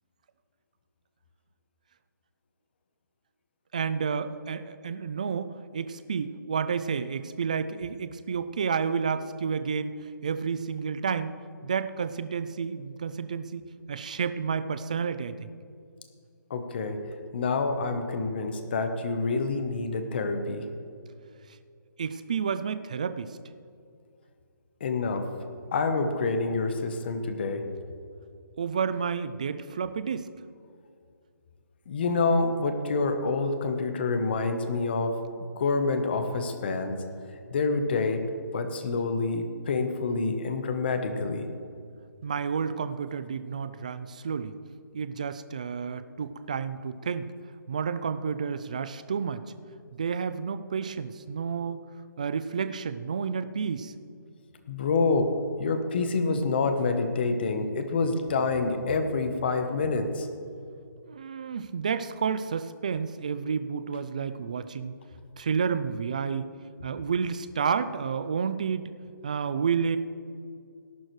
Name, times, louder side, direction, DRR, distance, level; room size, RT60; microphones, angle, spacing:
voice 1, 3.7-11.3 11.6-15.5 22.0-23.4 28.6-30.3 42.2-44.6 44.9-47.3 47.7-49.4 49.9-51.8 52.2-53.9 61.1-65.0 65.4-66.5 66.8-68.9 69.2-70.0, right 6 dB, 20° right, 12 dB, 0.3 m, -30 dB
voice 2, 16.5-17.0 17.3-20.6 24.8-25.3 25.7-27.6 31.9-35.2 35.6-37.0 37.5-38.2 38.5-41.4 54.7-55.3 55.6-60.3, left 3 dB, 30° left, 7 dB, 1.0 m, -27 dB
18.0 x 11.0 x 3.2 m, 2.3 s
hypercardioid pair, 170°, 11 cm